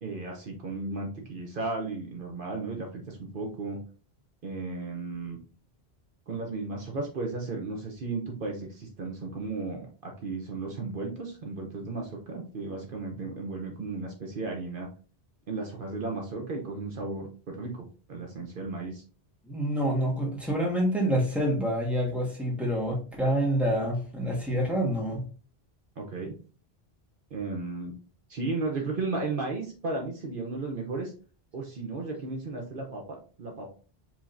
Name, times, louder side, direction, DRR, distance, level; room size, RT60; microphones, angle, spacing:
voice 1, 0.0-3.8 4.4-5.4 6.3-14.9 15.5-19.0 26.0-26.3 27.3-27.9 28.3-31.1 31.5-33.7, right 3 dB, 60° right, 1 dB, 1.0 m, -34 dB
voice 2, 19.5-25.2, equal, ahead, -2 dB, 1.4 m, -27 dB
4.9 x 3.7 x 2.6 m, 0.38 s
omnidirectional pair, 1.1 m